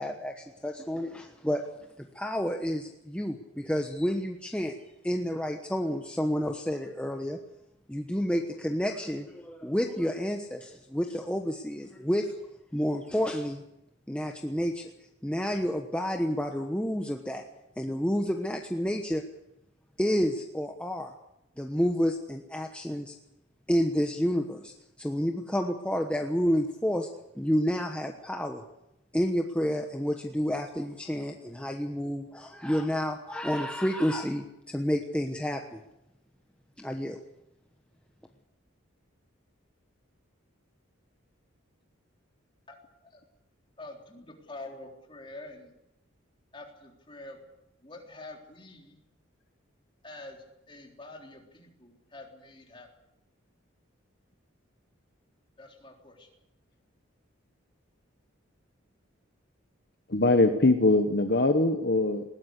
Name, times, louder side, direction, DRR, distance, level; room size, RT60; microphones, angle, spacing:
voice 1, 0.0-1.7 2.0-4.8 5.0-7.4 7.9-12.3 12.7-13.6 14.1-14.9 15.2-17.4 17.8-19.2 20.0-21.1 21.6-23.1 23.7-24.7 25.0-27.1 27.3-28.6 29.1-35.8 36.8-37.2, equal, 5° left, 3 dB, 1.1 m, -30 dB
voice 2, 43.8-45.7 46.5-47.5 47.8-49.0 50.0-52.9 55.6-56.3, left 2 dB, 25° left, 1 dB, 3.8 m, -46 dB
voice 3, 60.1-62.2, left 2 dB, 50° left, 6 dB, 1.2 m, -22 dB
20.5 x 17.5 x 8.3 m, 0.86 s
head